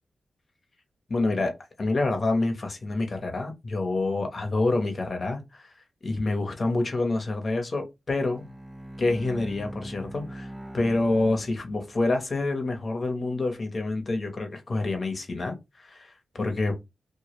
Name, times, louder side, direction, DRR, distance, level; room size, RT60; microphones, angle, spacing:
voice 1, 1.1-1.5 1.8-5.7 6.0-8.5 9.0-10.5 10.7-16.7, left 2 dB, 45° left, 0.7 m, -27 dB
Bowed string instrument, 8.2-12.2, right 1 dB, 15° right, 0.6 m, -41 dB
2.1 x 2.0 x 2.9 m
cardioid pair, 70°, 0 cm